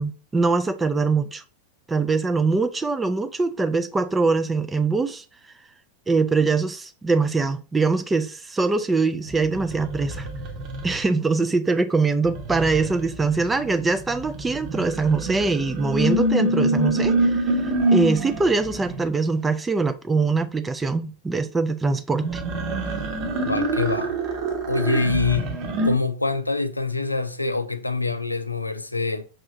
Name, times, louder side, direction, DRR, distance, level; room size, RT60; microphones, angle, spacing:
voice 1, 0.0-1.4 1.9-5.2 6.1-10.3 10.8-17.6 17.9-22.4, right 4 dB, 10° right, 0.3 m, -23 dB
sound 1, 9.3-11.2 12.2-19.1 22.1-25.9, right 1 dB, 40° right, 1.0 m, -26 dB
voice 2, 23.4-24.2 24.7-25.5 25.8-29.2, left 3 dB, 85° left, 0.4 m, -25 dB
5.3 x 3.2 x 2.6 m
figure-of-eight pair, 90°, 0 cm